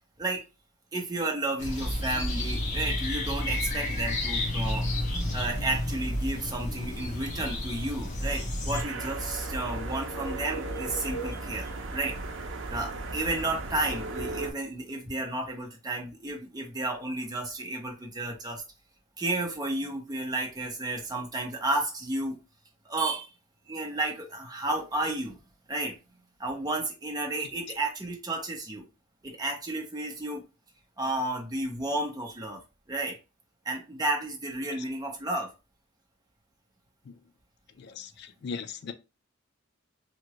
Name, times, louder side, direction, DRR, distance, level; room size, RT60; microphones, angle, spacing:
voice 1, 0.9-4.9 5.3-12.2 12.7-18.6 19.2-22.4 22.8-23.3 23.7-25.4 25.7-26.0 26.4-28.9 29.2-30.4 31.0-32.6 32.9-33.2 33.6-35.5, right 2 dB, 20° right, 0.8 m, -32 dB
sound 1, 1.6-8.8, left 1 dB, 40° left, 0.9 m, -31 dB
sound 2, 8.7-14.5, right 2 dB, 65° right, 0.6 m, -35 dB
voice 2, 37.8-38.9, left 5 dB, 55° left, 0.4 m, -38 dB
2.9 x 2.5 x 2.9 m
head